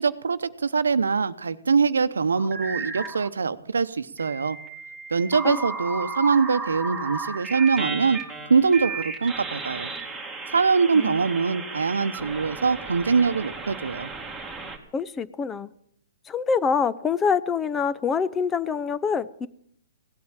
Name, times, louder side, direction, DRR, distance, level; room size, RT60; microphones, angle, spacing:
voice 1, 0.0-4.6 5.1-8.2 8.5-9.9 10.5-14.1, right 5 dB, 90° right, 13 dB, 0.8 m, -23 dB
sound 1, 2.3-3.3 4.2-14.8, right 3 dB, ahead, 2.3 m, -34 dB
voice 2, 14.9-15.7 16.3-19.5, left 6 dB, 15° left, 16 dB, 0.5 m, -25 dB
17.0 x 8.7 x 8.9 m, 0.69 s
hypercardioid pair, 135°, 0 cm